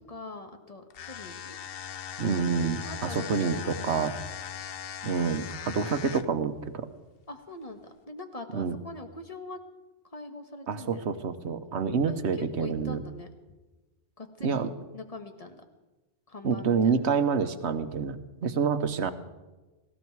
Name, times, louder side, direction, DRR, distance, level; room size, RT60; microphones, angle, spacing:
voice 1, 0.1-1.6 2.8-4.1 7.3-9.6 10.1-11.0 12.1-13.3 14.2-14.7 14.9-15.6 16.3-17.0, left 2 dB, 35° left, 6 dB, 1.4 m, -43 dB
sound 1, 0.9-6.4, left 8 dB, 60° left, 0.8 m, -39 dB
voice 2, 2.2-4.1 5.0-6.9 8.5-8.8 10.7-13.0 14.4-14.7 16.4-19.1, right 5 dB, 75° right, 10 dB, 1.3 m, -28 dB
18.5 x 16.5 x 4.7 m, 1.2 s
omnidirectional pair, 1.2 m